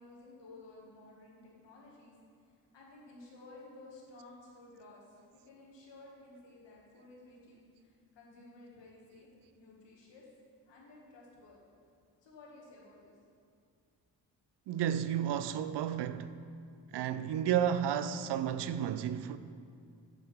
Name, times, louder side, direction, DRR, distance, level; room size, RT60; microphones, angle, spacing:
voice 1, 0.0-2.1 2.5-9.3 9.5-10.3 10.7-11.6 12.2-13.2, left 2 dB, 70° left, 2.1 m, -55 dB
voice 2, 14.7-16.3 16.9-19.4, right 9 dB, 65° right, 0.5 m, -32 dB
8.0 x 7.7 x 3.6 m
supercardioid pair, 55°, 45 cm